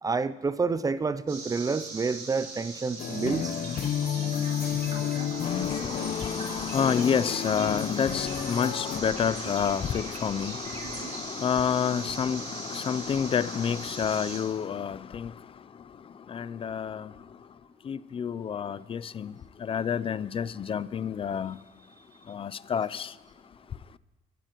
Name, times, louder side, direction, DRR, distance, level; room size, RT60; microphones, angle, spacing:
voice 1, 0.0-3.6, right 4 dB, 20° right, 0.5 m, -28 dB
sound 1, 1.3-14.4, right 3 dB, 85° right, 5.6 m, -41 dB
sound 2, 3.0-9.0, left 9 dB, 60° left, 0.9 m, -31 dB
sound 3, 3.4-11.2, right 3 dB, 40° right, 3.1 m, -45 dB
voice 2, 5.4-15.3 16.3-17.1 17.9-19.3 19.6-21.6 22.3-23.1, left 7 dB, 35° left, 0.4 m, -29 dB
24.0 x 13.5 x 3.0 m
cardioid pair, 110°, 17 cm